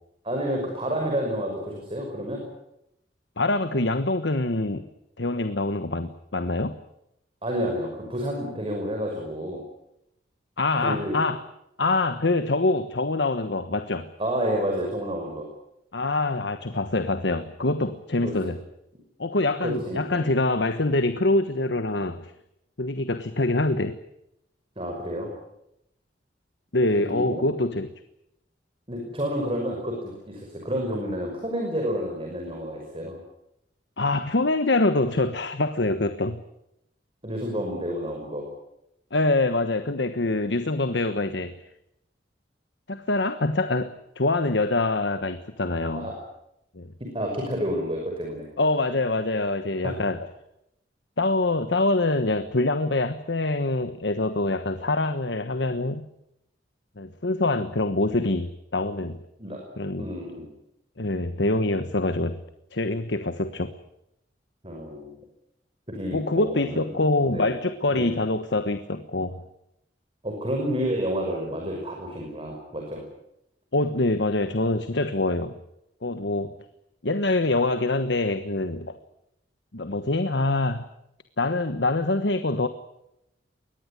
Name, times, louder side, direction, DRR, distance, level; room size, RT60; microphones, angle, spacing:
voice 1, 0.2-2.4 7.4-9.6 10.8-11.2 14.2-15.5 18.2-18.5 19.6-20.2 24.8-25.3 27.0-27.4 28.9-33.2 37.2-38.5 45.9-46.2 47.0-48.5 49.8-50.0 59.4-59.6 60.0-60.5 64.6-65.2 65.9-66.9 67.2-67.5 67.9-68.1 70.2-73.0, equal, 30° right, 1 dB, 5.7 m, -30 dB
voice 2, 3.4-4.9 5.2-6.8 10.6-11.4 11.8-14.1 15.9-18.6 19.2-22.3 22.8-24.0 26.7-27.9 34.0-36.4 39.1-41.5 42.9-46.1 46.7-46.9 48.6-50.2 51.2-56.1 57.0-59.2 59.8-60.1 61.0-62.4 62.7-63.7 66.1-69.4 73.7-75.6 76.0-76.5 77.0-79.0 79.7-80.8 81.4-82.7, left 2 dB, 80° left, 10 dB, 1.3 m, -25 dB
23.0 x 19.0 x 9.8 m, 0.83 s
head